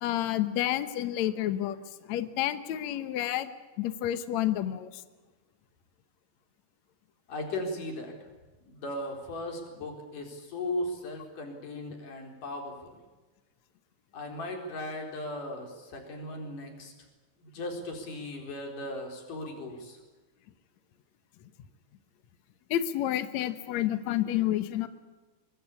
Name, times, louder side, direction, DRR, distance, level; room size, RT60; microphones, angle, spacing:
voice 1, 0.0-1.8 2.0-3.5 3.8-5.0 22.7-24.9, left 12 dB, 90° left, 11 dB, 1.6 m, -29 dB
voice 2, 7.3-8.3 8.7-13.0 14.1-16.9 17.4-20.0, left 1 dB, 50° left, 3 dB, 5.6 m, -37 dB
23.5 x 22.0 x 8.6 m, 1.2 s
omnidirectional pair, 5.0 m